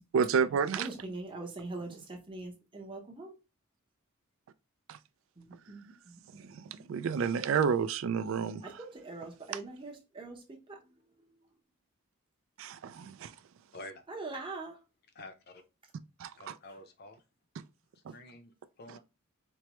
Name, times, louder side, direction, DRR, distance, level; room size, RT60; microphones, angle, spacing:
voice 1, 0.1-0.9 4.9-5.0 6.4-6.6 6.9-8.8 12.6-13.3 16.2-16.5 18.1-18.2, right 6 dB, 65° right, 0.3 m, -30 dB
voice 2, 0.7-3.3 5.4-7.2 8.6-10.8 11.2-11.3 14.1-14.8, right 3 dB, 25° right, 0.8 m, -43 dB
voice 3, 13.7-14.0 15.1-15.6 16.4-17.2 18.1-19.0, left 2 dB, 45° left, 0.6 m, -49 dB
4.5 x 2.0 x 3.0 m
head